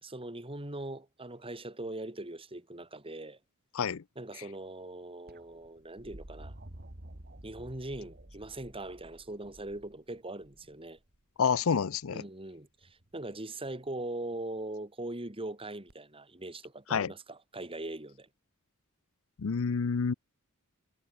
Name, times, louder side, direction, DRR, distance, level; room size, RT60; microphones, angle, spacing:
voice 1, 0.0-3.4 4.2-6.5 7.4-11.0 12.1-18.3, right 2 dB, 25° right, 3.6 m, -41 dB
sound 1, 5.3-11.2 12.8-13.3 15.9-16.0, right 1 dB, 45° right, 2.4 m, -51 dB
voice 2, 11.4-12.2 16.9-17.1 19.4-20.1, left 6 dB, 70° left, 0.5 m, -28 dB
head